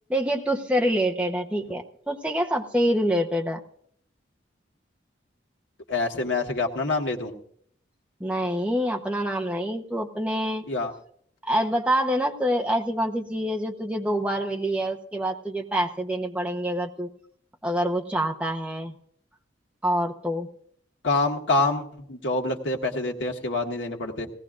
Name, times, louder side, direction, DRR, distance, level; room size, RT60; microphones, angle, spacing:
voice 1, 0.1-3.6 8.2-10.6 11.4-17.1 17.6-19.0 19.8-20.5, equal, 5° right, 2 dB, 0.9 m, -26 dB
voice 2, 5.9-7.3 10.7-10.9 21.0-24.3, left 3 dB, 80° left, 2 dB, 1.6 m, -26 dB
17.5 x 17.5 x 2.5 m, 0.64 s
head